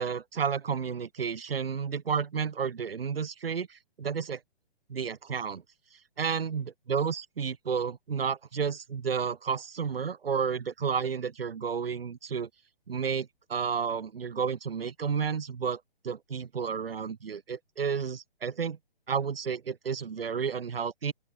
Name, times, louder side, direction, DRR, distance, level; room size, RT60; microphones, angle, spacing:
voice 1, 0.0-4.4 4.9-5.6 6.2-12.5 12.9-18.8 19.1-21.1, right 6 dB, 70° right, 6.0 m, -31 dB
open air
hypercardioid pair, 145°, 30 cm